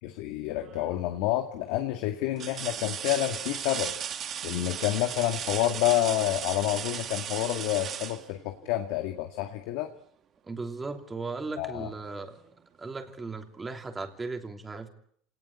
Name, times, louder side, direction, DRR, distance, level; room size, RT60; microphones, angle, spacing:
voice 1, 0.0-3.9 4.4-9.9 11.6-11.9, left 14 dB, 75° left, 6 dB, 2.0 m, -29 dB
sound 1, 0.6-1.1 1.6-1.7 2.4-9.0 10.8-11.0 11.4-12.5 13.8-13.9, right 9 dB, 40° right, 1.9 m, -37 dB
voice 2, 10.4-12.4 12.8-14.9, right 3 dB, 15° right, 5 dB, 3.1 m, -37 dB
27.0 x 19.0 x 9.9 m, 0.67 s
supercardioid pair, 130°, 0 cm